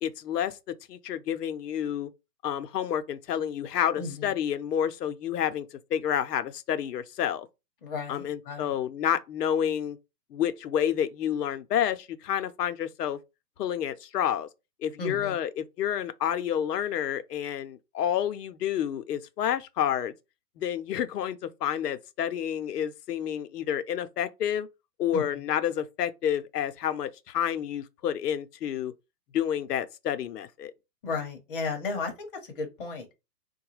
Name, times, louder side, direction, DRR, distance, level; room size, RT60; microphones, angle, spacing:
voice 1, 0.0-0.6 0.9-2.1 2.4-7.5 8.1-10.0 10.3-13.2 13.6-14.5 14.8-20.1 20.6-24.7 25.0-28.9 29.3-30.7, left 9 dB, 70° left, 0.6 m, -29 dB
voice 2, 4.0-4.3 7.8-8.8 15.0-15.4 25.1-25.5 31.0-33.1, left 4 dB, 35° left, 0.9 m, -34 dB
3.9 x 2.2 x 3.0 m
hypercardioid pair, 160°, 49 cm